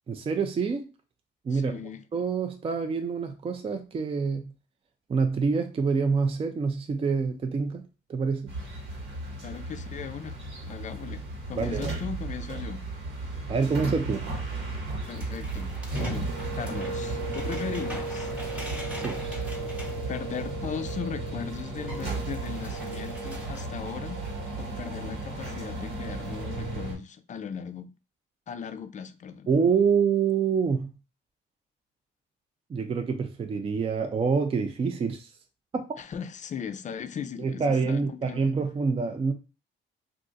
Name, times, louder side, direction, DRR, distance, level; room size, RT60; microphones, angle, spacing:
voice 1, 0.1-0.9 1.4-1.8 2.1-4.5 5.1-8.5 11.6-11.9 13.5-14.3 19.0-19.2 29.5-30.9 32.7-35.3 35.7-35.9 37.4-39.3, right 5 dB, 30° right, 0.4 m, -26 dB
voice 2, 1.5-2.0 9.4-10.4 10.7-11.2 11.5-12.8 15.1-18.3 20.1-24.3 24.6-27.9 28.5-29.5 36.0-38.5, left 7 dB, 40° left, 0.4 m, -38 dB
sound 1, 8.5-26.9, right 2 dB, 70° right, 1.4 m, -34 dB
sound 2, 15.0-20.9 21.3-21.4 21.6-23.7, equal, 5° right, 0.9 m, -44 dB
2.5 x 2.4 x 3.8 m
cardioid pair, 90°, 20 cm